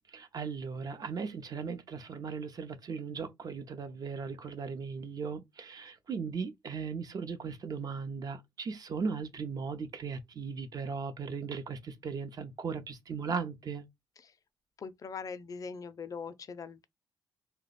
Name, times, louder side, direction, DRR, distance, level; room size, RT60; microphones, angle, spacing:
voice 1, 0.1-13.8, right 5 dB, 50° right, 0.7 m, -37 dB
voice 2, 14.8-16.9, left 5 dB, 45° left, 0.5 m, -41 dB
2.8 x 2.2 x 4.0 m
cardioid pair, 90°, 8 cm